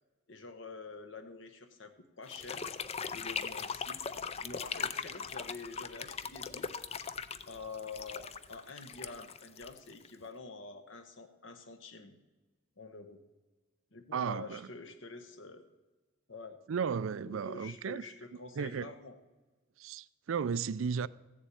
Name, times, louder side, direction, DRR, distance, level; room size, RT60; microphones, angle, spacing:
voice 1, 0.3-2.7 3.1-4.0 4.4-6.9 7.5-12.2 12.8-13.2 13.9-15.7 16.3-16.6 17.2-19.2, left 3 dB, 60° left, 1.0 m, -47 dB
sound 1, 2.3-10.3, left 6 dB, 30° left, 0.4 m, -40 dB
voice 2, 14.1-14.7 16.7-18.0 18.6-18.9 19.8-21.1, right 6 dB, 70° right, 0.4 m, -34 dB
15.0 x 7.3 x 8.4 m
head